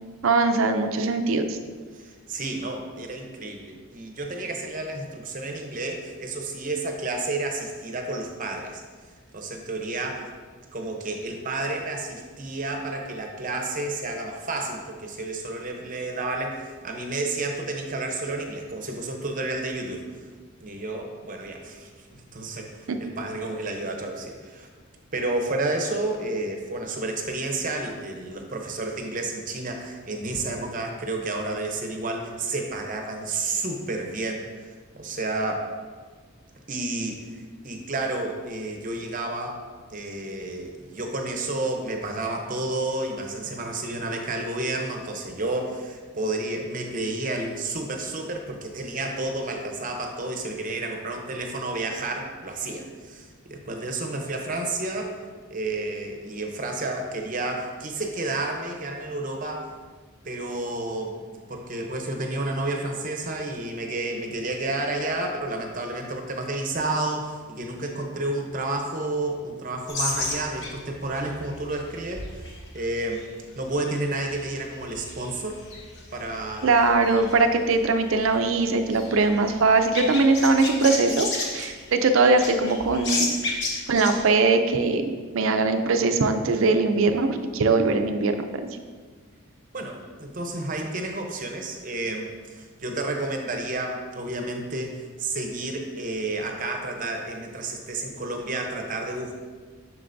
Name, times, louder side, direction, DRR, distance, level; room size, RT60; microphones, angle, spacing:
voice 1, 0.2-1.6 22.9-23.0 76.6-81.3 81.5-83.3 83.9-88.5, right 3 dB, 70° right, 7 dB, 0.5 m, -21 dB
voice 2, 1.9-8.8 9.3-10.3 10.7-20.1 20.6-24.7 25.1-35.7 36.7-37.2 37.6-39.6 39.9-55.2 55.5-59.7 60.2-61.2 61.5-73.2 73.6-75.6 76.1-76.7 89.7-99.3, right 2 dB, 40° right, 3 dB, 0.7 m, -31 dB
sound 1, 69.9-84.2, left 3 dB, 55° left, 1.1 m, -34 dB
7.6 x 6.0 x 2.6 m, 1.5 s
head